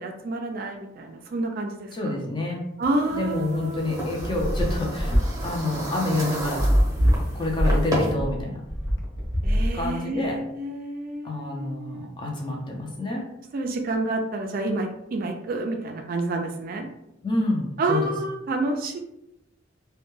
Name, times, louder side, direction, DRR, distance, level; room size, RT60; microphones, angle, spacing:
voice 1, 0.0-2.1 2.8-4.1 9.4-12.1 13.5-16.9 17.8-19.0, right 2 dB, 50° right, 3 dB, 0.3 m, -29 dB
voice 2, 1.9-2.6 3.1-5.1 5.4-6.7 7.3-8.6 9.7-10.4 11.2-13.2 17.2-18.1, left 2 dB, 25° left, -1 dB, 0.5 m, -28 dB
sound 1, 2.8-8.1, right 1 dB, 20° right, 0.8 m, -33 dB
sound 2, 4.2-10.2, equal, 75° left, 0.7 m, -23 dB
2.2 x 2.1 x 3.0 m, 0.82 s
head